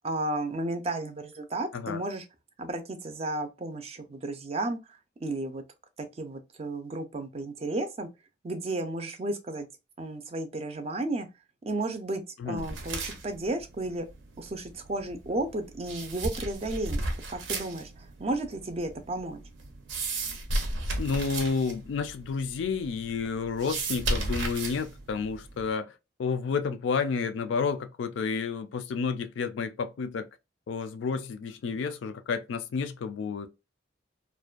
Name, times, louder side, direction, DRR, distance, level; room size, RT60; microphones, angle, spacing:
voice 1, 0.0-2.2 2.6-5.6 6.0-8.1 8.4-9.7 10.0-11.3 11.6-14.1 14.4-19.4, right 2 dB, 30° right, 0.4 m, -33 dB
sound 1, 12.6-25.7, right 2 dB, 80° right, 0.6 m, -35 dB
voice 2, 21.0-25.9 26.2-30.3 30.7-33.5, left 5 dB, 75° left, 0.3 m, -30 dB
2.5 x 2.1 x 2.3 m
head